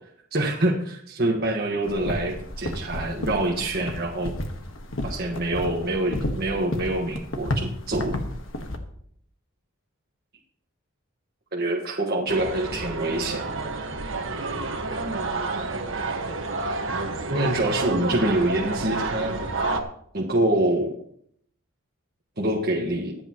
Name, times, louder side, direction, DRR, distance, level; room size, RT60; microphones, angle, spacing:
voice 1, 0.3-4.3 5.0-8.2 11.5-13.4 17.3-19.3 20.1-20.9 22.4-23.1, right 1 dB, 45° right, -1 dB, 1.5 m, -25 dB
sound 1, 1.8-8.8, left 1 dB, 60° left, 1.4 m, -32 dB
sound 2, 12.3-19.8, right 3 dB, 60° right, 1.4 m, -29 dB
24.5 x 8.6 x 3.0 m, 0.65 s
head